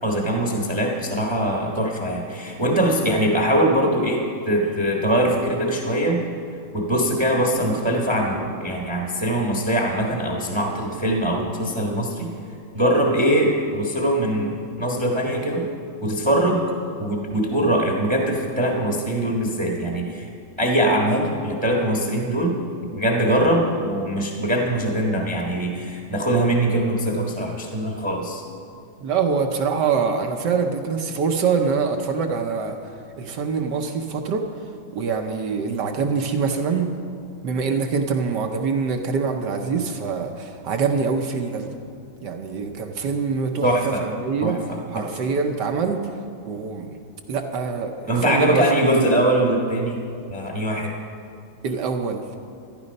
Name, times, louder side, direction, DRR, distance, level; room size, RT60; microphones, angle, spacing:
voice 1, 0.0-6.2 6.7-12.3 12.7-15.7 16.0-16.6 17.0-20.3 20.6-22.6 22.9-28.4 43.6-44.1 44.4-45.1 48.1-50.0 50.3-50.9, right 1 dB, 15° right, 0 dB, 1.0 m, -22 dB
voice 2, 29.0-32.8 33.2-34.5 34.9-36.9 37.4-41.8 42.2-44.6 44.9-46.0 46.4-46.9 47.3-49.1 51.6-52.2, right 5 dB, 65° right, 4 dB, 1.3 m, -24 dB
14.0 x 11.5 x 5.3 m, 2.3 s
omnidirectional pair, 2.2 m